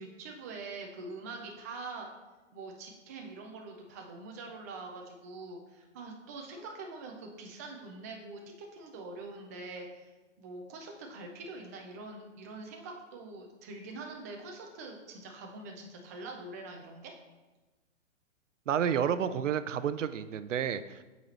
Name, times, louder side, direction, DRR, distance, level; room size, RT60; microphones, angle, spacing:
voice 1, 0.0-2.1 2.5-8.4 8.7-10.1 10.4-17.1, right 3 dB, 15° right, 1 dB, 0.3 m, -44 dB
voice 2, 18.7-21.0, right 8 dB, 80° right, 13 dB, 0.5 m, -30 dB
7.5 x 4.1 x 4.2 m, 1.2 s
hypercardioid pair, 130°, 37 cm